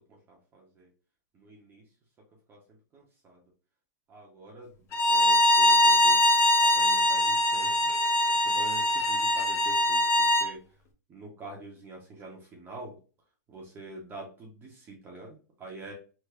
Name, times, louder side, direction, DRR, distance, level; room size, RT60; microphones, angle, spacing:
voice 1, 0.3-0.9 1.4-1.8 2.5-2.6 2.9-3.4 4.1-4.7 5.1-6.2 6.6-7.7 8.4-10.6 11.1-12.9 13.5-15.9, right 2 dB, 20° right, -2 dB, 0.8 m, -45 dB
Bowed string instrument, 4.9-10.5, left 1 dB, 25° left, 0.5 m, -22 dB
3.4 x 2.0 x 3.6 m, 0.36 s
hypercardioid pair, 130°, 10 cm